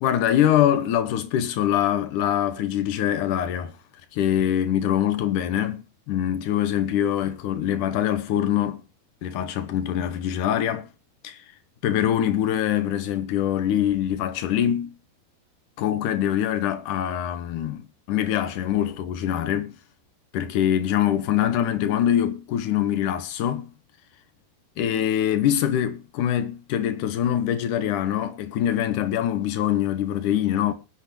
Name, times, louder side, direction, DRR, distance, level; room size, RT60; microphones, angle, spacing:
voice 1, 0.0-3.7 4.1-8.8 9.2-10.9 11.2-11.4 11.8-14.9 15.8-19.8 20.3-23.7 24.8-30.7, left 10 dB, 65° left, 2.3 m, -24 dB
20.5 x 8.5 x 3.0 m
omnidirectional pair, 4.6 m